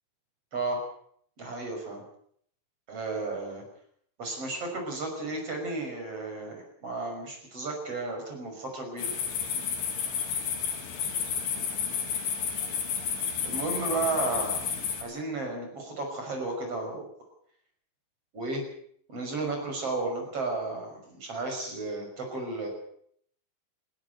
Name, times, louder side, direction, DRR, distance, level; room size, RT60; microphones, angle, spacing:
voice 1, 0.5-0.8 1.4-2.0 2.9-3.6 4.2-9.1 13.4-14.6 15.0-17.1 18.3-18.6 19.1-22.7, right 3 dB, 30° right, 3 dB, 6.6 m, -33 dB
sound 1, 9.0-15.0, left 7 dB, 80° left, 5.8 m, -31 dB
20.5 x 16.0 x 8.1 m, 0.65 s
omnidirectional pair, 5.3 m